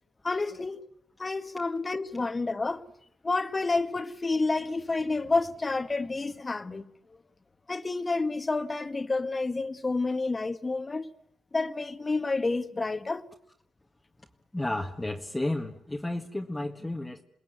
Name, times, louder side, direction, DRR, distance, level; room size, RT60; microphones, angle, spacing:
voice 1, 0.2-0.8 1.2-2.8 3.2-6.9 7.7-11.1 11.5-13.2, left 3 dB, 25° left, 1.6 m, -29 dB
voice 2, 14.5-17.2, left 1 dB, 10° left, 1.7 m, -32 dB
28.5 x 20.0 x 9.3 m
cardioid pair, 85°, 0 cm